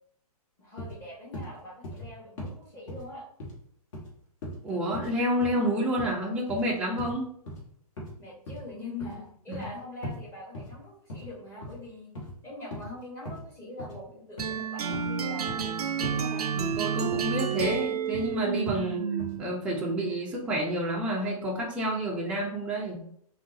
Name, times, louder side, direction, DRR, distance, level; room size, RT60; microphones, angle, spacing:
voice 1, 0.6-3.3 8.2-12.1 12.4-16.5 18.8-19.1, left 2 dB, 10° left, -5 dB, 1.1 m, -43 dB
sound 1, 0.8-1.0 1.3-1.5 1.8-2.1 2.4-2.5 2.9-3.0 3.4-3.5 3.9-4.1 4.4-4.6 4.9-5.1 5.4-5.6 6.0-6.1 6.5-6.6 7.0-7.2 7.5-7.6 8.0-8.1 8.5-8.6 9.0-9.7 10.0-10.2 10.5-10.8 11.1-11.3 11.6-11.8 12.1-12.3 12.7-12.9 13.2-13.4 13.8-14.0 14.4-14.5 14.9-15.1 15.5-15.7 16.0-16.2 16.6-16.8 17.1-17.3 17.6-17.8 18.1-18.4 18.7-18.8 19.2-19.4, left 1 dB, 50° left, 1.4 m, -39 dB
voice 2, 4.6-7.3 9.5-9.7 16.6-19.0 19.4-23.0, equal, 5° right, -3 dB, 0.4 m, -29 dB
sound 2, 14.4-19.5, right 7 dB, 75° right, 0.4 m, -30 dB
3.6 x 2.3 x 2.6 m, 0.66 s
hypercardioid pair, 140°, 20 cm